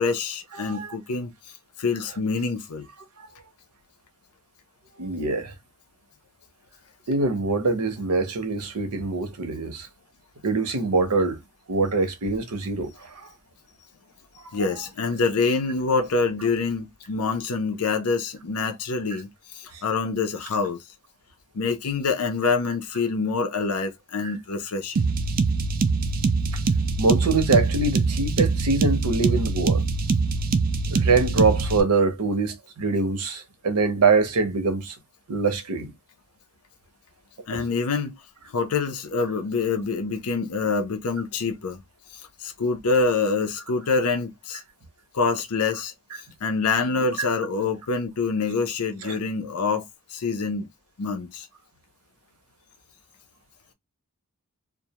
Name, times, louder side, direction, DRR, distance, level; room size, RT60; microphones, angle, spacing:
voice 1, 0.0-1.3 1.8-2.9 14.5-20.8 21.5-25.1 37.5-38.1 38.5-41.8 42.1-44.6 45.1-45.9 46.4-49.9 50.1-50.7 51.0-51.5, left 4 dB, 75° left, 0.6 m, -26 dB
voice 2, 0.5-1.0 3.2-3.3 5.0-5.5 7.1-9.9 10.4-11.4 11.7-13.3 14.4-14.6 19.7-19.8 27.0-29.8 30.9-35.0 35.3-35.9 37.5-37.6 47.3-47.4 49.0-49.2, right 3 dB, 80° right, 0.7 m, -24 dB
sound 1, 25.0-31.8, right 4 dB, 40° right, 0.3 m, -23 dB
2.3 x 2.1 x 2.8 m
head